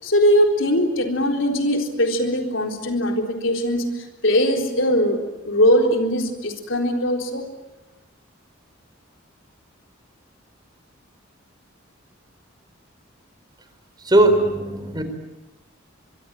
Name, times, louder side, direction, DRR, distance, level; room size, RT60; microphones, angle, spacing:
voice 1, 0.0-7.5, equal, 70° left, 3 dB, 4.0 m, -21 dB
voice 2, 14.0-15.0, right 1 dB, 20° right, 8 dB, 4.4 m, -18 dB
24.5 x 23.5 x 9.1 m, 1.0 s
head